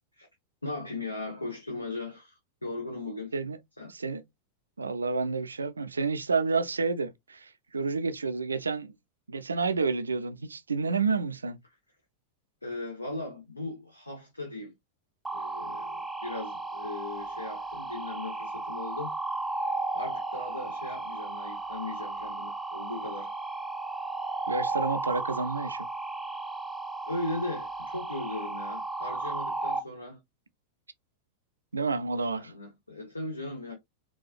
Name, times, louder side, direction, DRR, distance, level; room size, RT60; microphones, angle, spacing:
voice 1, 0.6-3.4 3.8-3.9 12.6-14.7 15.3-19.2 19.9-23.3 27.0-30.2 32.3-33.7, left 2 dB, 80° left, 0.7 m, -38 dB
voice 2, 3.9-4.2 4.8-8.9 9.3-11.6 24.5-25.9 31.7-32.5, right 4 dB, 75° right, 0.4 m, -30 dB
sound 1, 15.2-29.8, right 3 dB, 5° right, 0.5 m, -34 dB
4.1 x 2.3 x 2.4 m
figure-of-eight pair, 90°, 0 cm